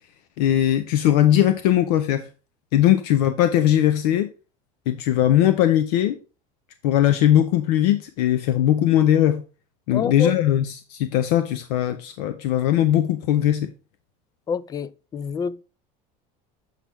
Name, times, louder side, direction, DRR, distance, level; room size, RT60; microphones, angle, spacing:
voice 1, 0.4-2.3 2.7-4.3 4.9-6.2 6.8-9.4 9.9-13.7, left 12 dB, 80° left, 0.7 m, -19 dB
voice 2, 9.9-10.3 14.5-15.6, left 6 dB, 20° left, 0.3 m, -27 dB
7.4 x 5.9 x 3.5 m
supercardioid pair, 130°, 20 cm